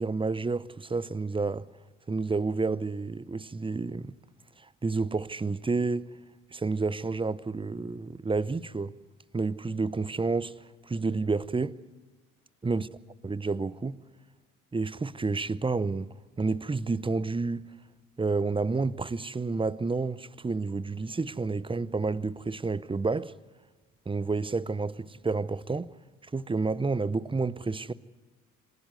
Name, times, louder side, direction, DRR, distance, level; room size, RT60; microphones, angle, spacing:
voice 1, 0.0-1.7 2.1-4.1 4.8-6.1 6.5-8.9 9.3-10.5 10.9-11.8 12.6-12.9 13.2-14.0 14.7-17.7 18.2-23.3 24.1-25.9 26.3-27.9, right 3 dB, 15° right, 0.8 m, -30 dB
26.5 x 13.5 x 9.5 m
hypercardioid pair, 50°, 40 cm